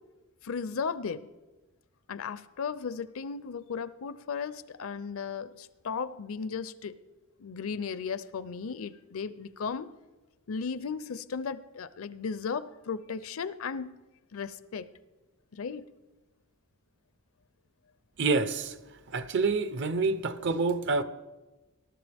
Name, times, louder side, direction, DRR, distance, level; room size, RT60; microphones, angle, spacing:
voice 1, 0.4-1.3 2.1-7.0 7.4-9.9 10.5-13.9 14.3-14.9 15.5-15.9, left 5 dB, 65° left, 0.5 m, -35 dB
voice 2, 18.2-18.7 19.1-21.0, right 4 dB, 55° right, 0.7 m, -27 dB
19.5 x 12.0 x 3.5 m
head